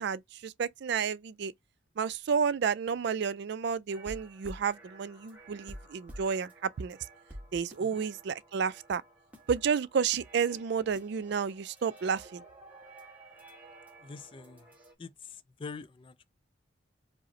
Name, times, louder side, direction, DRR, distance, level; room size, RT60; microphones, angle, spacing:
voice 1, 0.0-1.5 2.0-7.0 7.5-9.0 9.5-12.4, right 6 dB, 55° right, 0.3 m, -31 dB
sound 1, 3.9-14.9, right 1 dB, 10° right, 1.2 m, -51 dB
voice 2, 14.0-14.7 15.0-16.3, left 4 dB, 25° left, 0.3 m, -45 dB
4.9 x 2.0 x 2.8 m
head